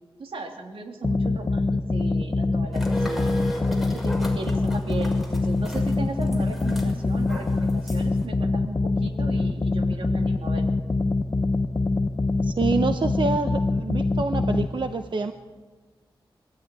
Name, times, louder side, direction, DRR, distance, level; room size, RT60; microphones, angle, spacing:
voice 1, 0.2-3.4 4.0-10.7, right 3 dB, 85° right, 3 dB, 3.3 m, -36 dB
sound 1, 1.0-14.7, left 3 dB, 35° left, 1.1 m, -24 dB
sound 2, 2.7-8.3, equal, ahead, 6.0 m, -36 dB
voice 2, 12.4-15.3, right 4 dB, 60° right, 7 dB, 1.1 m, -27 dB
25.5 x 15.0 x 10.0 m, 1.3 s
wide cardioid pair, 75°, 9 cm